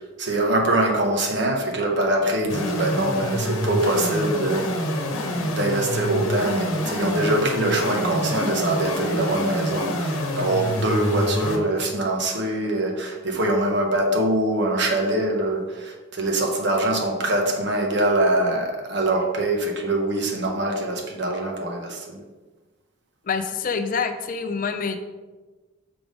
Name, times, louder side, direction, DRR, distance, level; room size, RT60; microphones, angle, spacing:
voice 1, 0.2-4.7 5.3-22.2, right 1 dB, 55° right, 1 dB, 1.1 m, -23 dB
sound 1, 2.5-11.6, left 1 dB, 85° left, 1.0 m, -27 dB
voice 2, 23.2-25.0, left 5 dB, 40° left, 8 dB, 0.4 m, -26 dB
6.0 x 3.4 x 5.1 m, 1.2 s
head